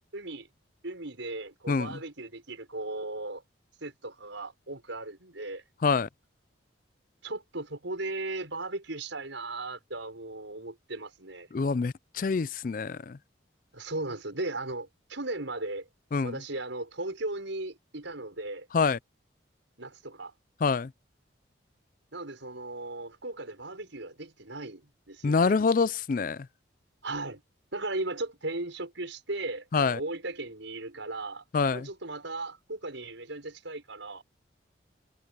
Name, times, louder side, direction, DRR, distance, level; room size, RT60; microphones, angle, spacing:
voice 1, 0.1-0.5 0.8-3.4 3.8-5.6 7.2-11.5 13.7-15.9 16.2-18.7 19.8-20.3 22.1-25.6 27.0-27.4 27.7-31.4 31.7-34.2, right 2 dB, 80° right, 6.0 m, -37 dB
voice 2, 1.7-2.0 5.8-6.1 11.5-13.2 16.1-16.4 18.7-19.0 20.6-20.9 25.2-26.5 29.7-30.0 31.5-31.9, left 4 dB, 45° left, 0.4 m, -26 dB
head